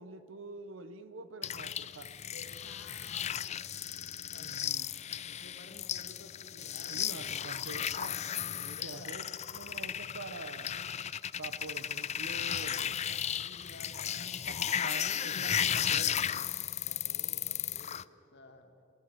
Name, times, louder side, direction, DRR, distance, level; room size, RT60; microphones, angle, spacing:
voice 1, 0.0-2.1 4.4-4.9 6.9-8.2 8.5-9.3 9.5-10.8 11.4-13.1 14.6-16.5, right 3 dB, 70° right, 12 dB, 1.0 m, -46 dB
sound 1, 1.4-18.0, left 9 dB, 35° left, 0.4 m, -35 dB
voice 2, 2.3-3.7 4.3-4.5 5.2-7.4 8.6-9.2 13.1-15.6 16.9-18.7, left 2 dB, 55° left, 5 dB, 2.3 m, -54 dB
27.0 x 17.0 x 7.0 m, 2.9 s
head